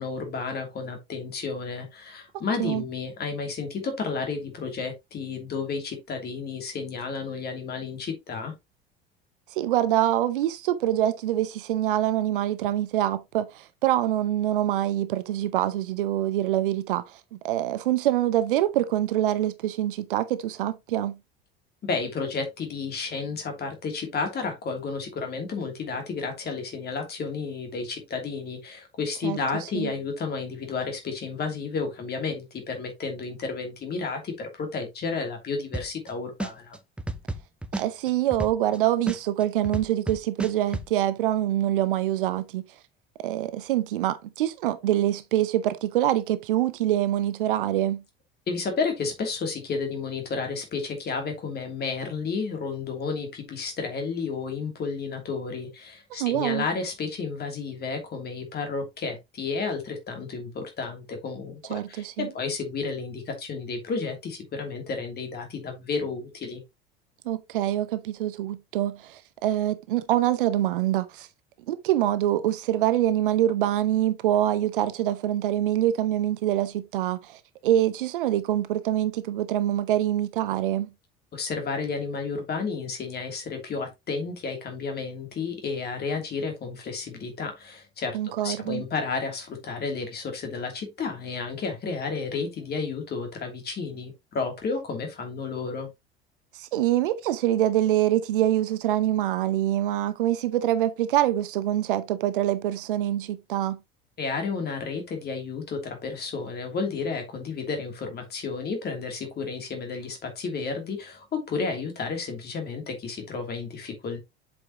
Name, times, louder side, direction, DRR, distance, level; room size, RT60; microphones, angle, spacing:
voice 1, 0.0-8.5 21.8-36.8 48.5-66.6 81.3-95.9 104.2-114.2, left 4 dB, 35° left, 2.9 m, -32 dB
voice 2, 9.6-17.2 17.4-21.2 29.2-29.4 29.7-29.9 37.8-42.6 43.2-48.0 56.1-56.6 61.7-62.3 67.2-71.3 71.7-80.9 88.1-88.8 96.6-103.8, right 13 dB, 60° right, 0.8 m, -25 dB
sound 1, 35.7-36.1 36.4-38.8 39.1-40.9, right 2 dB, 5° right, 0.8 m, -31 dB
7.7 x 5.5 x 2.9 m
figure-of-eight pair, 70°, 30 cm